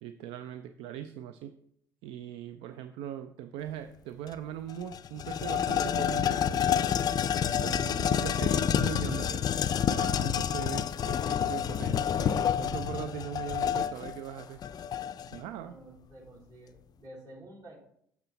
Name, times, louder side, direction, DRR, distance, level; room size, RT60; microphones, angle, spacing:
voice 1, 0.0-1.5 2.0-6.9 7.6-9.5 9.9-14.6 15.3-15.8, right 10 dB, 70° right, 11 dB, 0.4 m, -40 dB
sound 1, 4.3-4.4 4.7-15.4, left 9 dB, 45° left, 0.4 m, -28 dB
voice 2, 15.4-17.8, right 1 dB, 45° right, -3 dB, 3.4 m, -50 dB
7.2 x 5.9 x 4.0 m, 0.71 s
hypercardioid pair, 60°, 10 cm